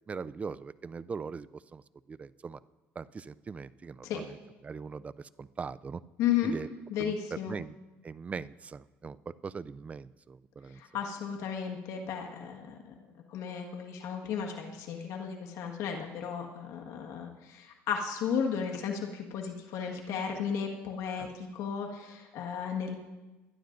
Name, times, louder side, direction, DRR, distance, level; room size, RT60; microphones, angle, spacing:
voice 1, 0.1-1.8 2.1-2.6 3.0-4.4 4.6-5.1 5.4-6.0 6.4-6.7 7.0-7.7 8.0-10.8 21.2-21.3, right 5 dB, 25° right, 18 dB, 0.4 m, -40 dB
voice 2, 6.2-6.6 6.9-7.6 10.8-12.9 13.3-23.0, left 7 dB, 70° left, 2 dB, 1.6 m, -34 dB
21.0 x 11.5 x 2.6 m, 1.1 s
cardioid pair, 105°, 5 cm